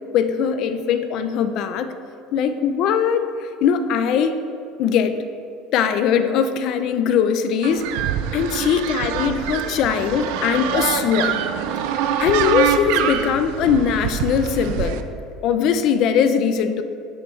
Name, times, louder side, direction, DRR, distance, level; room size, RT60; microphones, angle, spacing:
voice 1, 0.1-1.9 2.3-4.4 4.8-5.2 5.7-8.0 8.3-11.4 12.2-15.0 15.4-16.8, left 7 dB, 55° left, 9 dB, 0.4 m, -20 dB
sound 1, 7.6-15.0, right 9 dB, 75° right, 0.4 m, -25 dB
9.4 x 3.1 x 4.5 m, 2.6 s
supercardioid pair, 125°, 0 cm